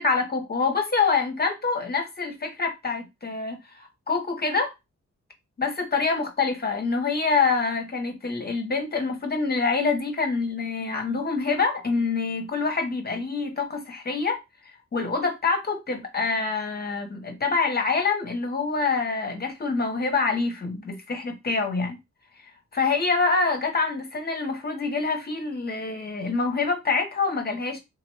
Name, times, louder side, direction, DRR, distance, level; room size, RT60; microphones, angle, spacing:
voice 1, 0.0-4.7 5.6-14.4 14.9-22.0 22.7-27.8, left 4 dB, 35° left, 0.7 m, -26 dB
3.6 x 2.1 x 3.0 m
wide cardioid pair, 115°, 29 cm